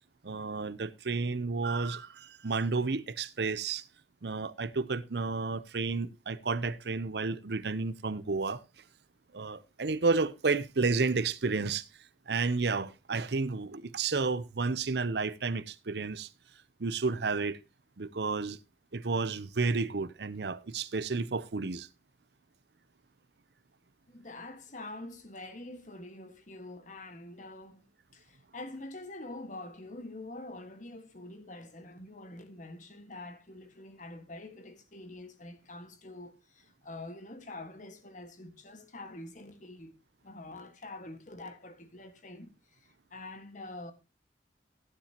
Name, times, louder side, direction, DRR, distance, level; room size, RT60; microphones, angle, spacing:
voice 1, 0.2-3.8 4.2-8.6 9.3-11.9 12.3-16.3 16.8-17.6 18.0-18.6 18.9-21.9, right 4 dB, 65° right, 0.7 m, -31 dB
voice 2, 24.1-27.9 28.1-39.9 40.2-42.8 43.1-43.9, left 2 dB, 45° left, 1.7 m, -45 dB
15.0 x 10.0 x 2.9 m
head